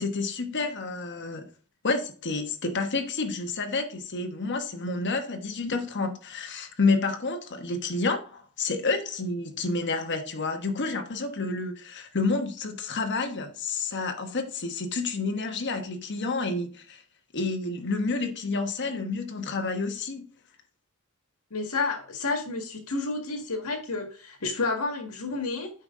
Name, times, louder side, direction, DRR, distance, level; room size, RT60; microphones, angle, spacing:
voice 1, 0.0-1.5 1.8-17.0 17.3-20.3, left 3 dB, 55° left, 1.2 m, -29 dB
voice 2, 21.5-25.7, left 3 dB, 85° left, 1.8 m, -30 dB
8.7 x 5.5 x 3.7 m
head